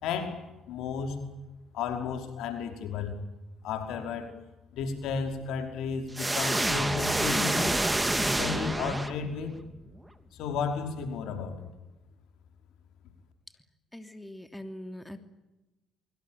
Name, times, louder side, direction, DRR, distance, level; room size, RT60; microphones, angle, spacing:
voice 1, 0.0-1.2 1.7-3.2 3.6-4.3 4.7-7.7 8.2-9.5 10.4-11.7, left 5 dB, 75° left, 6 dB, 5.3 m, -33 dB
sound 1, 6.1-9.5, right 1 dB, 15° right, 2.9 m, -28 dB
voice 2, 13.9-15.2, left 1 dB, 5° left, 8 dB, 3.0 m, -42 dB
25.0 x 24.5 x 9.3 m, 1.0 s
supercardioid pair, 65°, 0 cm